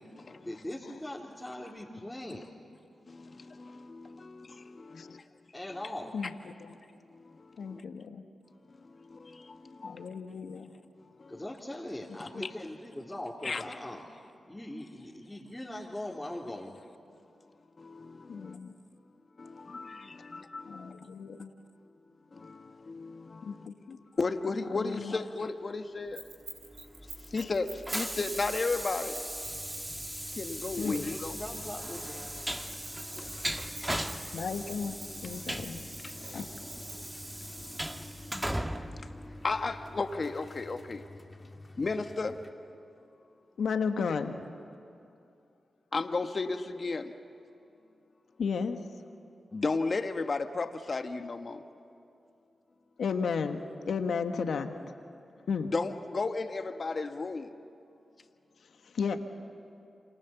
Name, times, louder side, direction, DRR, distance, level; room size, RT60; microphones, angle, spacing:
voice 1, 0.4-2.5 5.5-6.1 11.3-14.0 14.5-16.8 25.1-25.2 30.8-32.2 35.9-36.0, left 1 dB, 15° left, -5 dB, 3.4 m, -41 dB
voice 2, 3.1-5.2 7.7-7.8 9.1-10.0 13.4-13.6 17.8-18.6 19.4-20.9 22.4-23.6 24.2-26.2 27.3-29.2 30.4-31.4 33.5-33.7 36.0-36.1 39.4-41.0 41.8-42.3 45.9-47.1 49.5-51.6 55.7-57.5, left 3 dB, 50° left, 7 dB, 1.5 m, -34 dB
voice 3, 6.1-6.7 7.6-8.2 9.8-10.7 12.3-12.4 18.3-18.7 20.7-21.5 23.4-24.0 24.7-25.1 30.8-31.1 34.3-35.0 35.2-35.9 36.2-36.5 43.6-44.4 48.4-48.8 53.0-54.7 55.5-55.7 58.8-59.2, left 5 dB, 75° left, 7 dB, 1.5 m, -34 dB
Keys jangling, 26.1-31.8 32.7-37.4, right 5 dB, 85° right, 5.1 m, -48 dB
Train, 26.7-39.9, right 1 dB, 10° right, 1.7 m, -38 dB
sound 1, 29.4-42.5, left 2 dB, 35° left, 2.3 m, -51 dB
28.5 x 26.0 x 7.1 m, 2.6 s
supercardioid pair, 40°, 0 cm